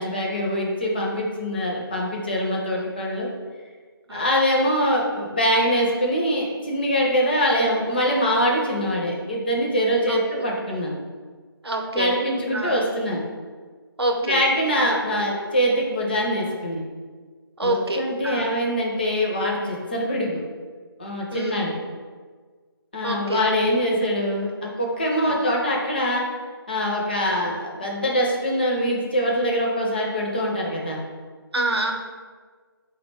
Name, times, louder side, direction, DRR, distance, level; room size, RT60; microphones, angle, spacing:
voice 1, 0.0-3.3 4.1-11.0 11.9-13.2 14.2-16.8 17.6-20.4 21.0-21.7 22.9-26.2 26.7-31.0, equal, 25° left, -2 dB, 0.4 m, -23 dB
voice 2, 11.6-12.1 12.5-12.8 14.0-14.4 14.8-15.0 17.6-18.5 21.3-21.6 23.0-23.4 25.2-25.4 27.3-27.4 31.5-31.9, right 1 dB, 80° right, 2 dB, 0.7 m, -27 dB
3.6 x 2.2 x 4.4 m, 1.5 s
figure-of-eight pair, 155°, 13 cm